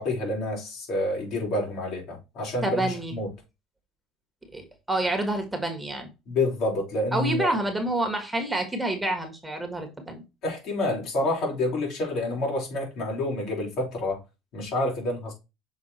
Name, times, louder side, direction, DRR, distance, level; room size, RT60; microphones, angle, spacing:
voice 1, 0.0-3.3 6.3-7.5 10.4-14.2 14.5-15.3, left 2 dB, 60° left, 4.3 m, -28 dB
voice 2, 2.6-3.2 4.5-6.1 7.1-10.2, right 1 dB, 5° right, 1.6 m, -28 dB
6.5 x 3.9 x 4.3 m
supercardioid pair, 110°, 0 cm